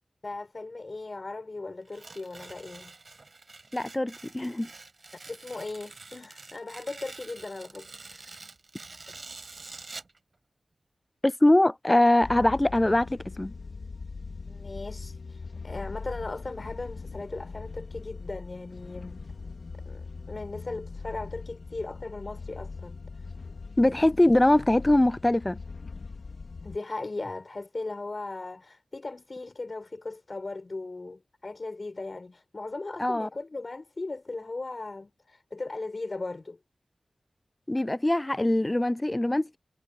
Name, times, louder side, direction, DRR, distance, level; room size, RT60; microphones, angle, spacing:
voice 1, 0.2-2.9 5.3-8.4 14.5-19.3 19.8-23.3 26.6-36.6, left 3 dB, 45° left, 6.7 m, -38 dB
Tearing, 1.9-10.2, right 3 dB, 55° right, 6.0 m, -47 dB
voice 2, 3.7-4.7 11.2-13.5 23.8-25.6 33.0-33.3 37.7-39.6, left 1 dB, 20° left, 0.3 m, -22 dB
sound 1, 12.2-26.8, left 4 dB, 75° left, 3.1 m, -41 dB
wide cardioid pair, 75°, 0 cm